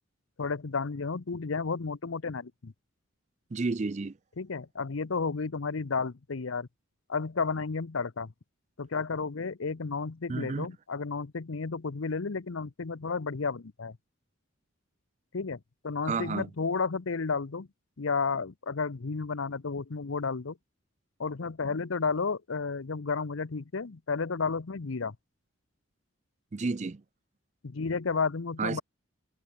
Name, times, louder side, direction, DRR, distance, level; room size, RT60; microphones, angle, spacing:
voice 1, 0.4-2.7 4.4-6.7 7.1-8.3 8.8-14.0 15.3-17.7 18.0-20.6 21.2-25.2 27.6-28.8, left 4 dB, 75° left, 0.7 m, -32 dB
voice 2, 3.5-4.2 10.3-10.7 16.1-16.5 26.5-27.0 28.6-28.8, right 4 dB, 35° right, 0.4 m, -31 dB
head